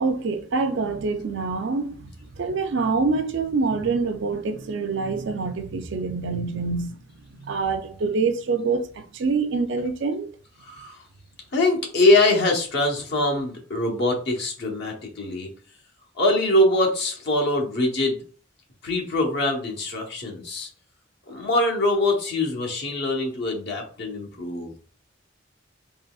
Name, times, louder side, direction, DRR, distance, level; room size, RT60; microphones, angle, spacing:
voice 1, 0.0-7.0 7.3-10.3, right 4 dB, 60° right, 0.4 m, -26 dB
voice 2, 10.6-11.0 11.5-15.5 16.2-18.2 18.8-20.7 21.3-24.8, left 2 dB, 55° left, 0.9 m, -23 dB
3.8 x 3.0 x 2.3 m
head